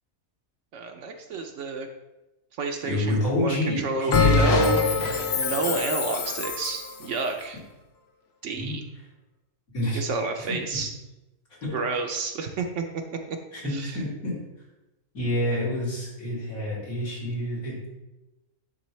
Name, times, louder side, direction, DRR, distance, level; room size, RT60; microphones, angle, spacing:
voice 1, 0.7-1.9 2.6-4.9 5.4-7.6 8.4-8.8 9.9-10.9 11.7-12.8 13.1-13.4 13.6-14.0, right 4 dB, 65° right, 4 dB, 0.9 m, -30 dB
voice 2, 2.8-4.7 5.0-5.1 8.5-8.7 9.7-10.0 10.4-10.8 11.6-11.7 13.5-14.3 15.1-17.9, left 1 dB, 75° left, -7 dB, 2.9 m, -28 dB
Bell, 4.1-6.9, left 4 dB, 55° left, 0.8 m, -23 dB
10.5 x 3.5 x 3.1 m, 1.0 s
omnidirectional pair, 1.5 m